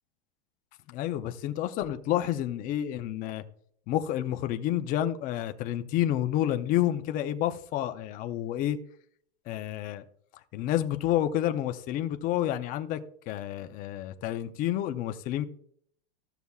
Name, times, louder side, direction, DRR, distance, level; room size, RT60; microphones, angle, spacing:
voice 1, 0.9-3.4 3.9-8.8 9.5-10.0 10.5-13.0 13.3-15.5, left 12 dB, 25° left, 0.6 m, -29 dB
14.5 x 6.8 x 2.3 m
supercardioid pair, 160°, 33 cm